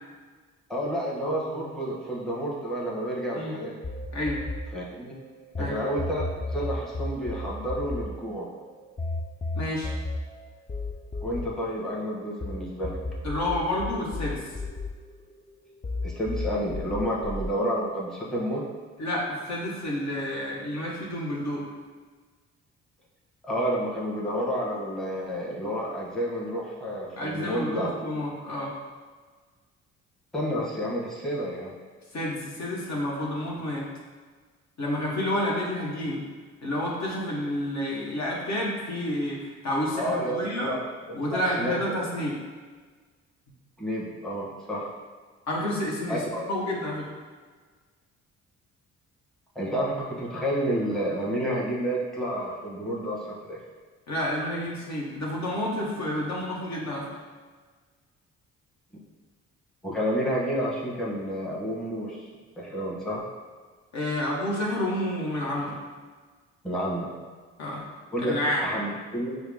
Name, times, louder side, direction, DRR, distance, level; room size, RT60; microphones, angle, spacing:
voice 1, 0.7-3.8 4.7-5.1 5.6-8.5 11.2-13.0 16.0-18.6 23.4-28.2 30.3-31.8 39.9-42.0 43.8-44.9 46.1-46.5 49.5-53.6 59.8-62.3 62.6-63.2 66.6-67.1 68.1-68.3 68.6-69.4, equal, ahead, -5 dB, 1.0 m, -30 dB
sound 1, 3.8-5.7 6.0-12.5 12.8-15.5 15.8-17.5, left 3 dB, 20° left, 0.4 m, -33 dB
voice 2, 9.5-9.9 13.2-14.4 19.0-21.7 27.2-28.7 32.1-33.8 34.8-36.2 36.6-40.7 41.1-42.4 45.5-46.2 46.5-47.1 54.1-57.1 63.9-65.8 67.6-67.8 68.2-68.6, left 1 dB, 55° left, -4 dB, 1.0 m, -29 dB
4.6 x 2.1 x 3.4 m, 1.5 s
supercardioid pair, 55°, 33 cm